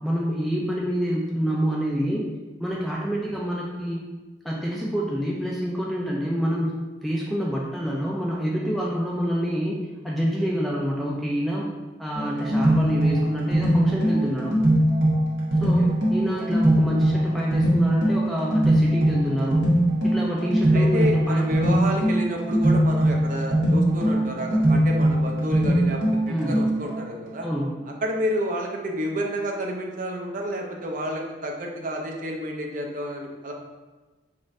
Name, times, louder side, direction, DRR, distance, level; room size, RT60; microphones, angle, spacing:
voice 1, 0.0-2.2 2.6-4.0 4.4-6.7 7.0-9.8 10.0-11.7 12.0-14.6 15.6-19.6 20.0-21.5 26.3-26.6 27.4-27.8, equal, ahead, -4 dB, 0.4 m, -27 dB
sound 1, 12.1-27.0, right 1 dB, 80° right, 1.2 m, -21 dB
voice 2, 15.6-15.9 20.4-27.5 28.0-33.5, equal, 45° right, 1 dB, 0.6 m, -30 dB
4.2 x 2.5 x 4.6 m, 1.2 s
head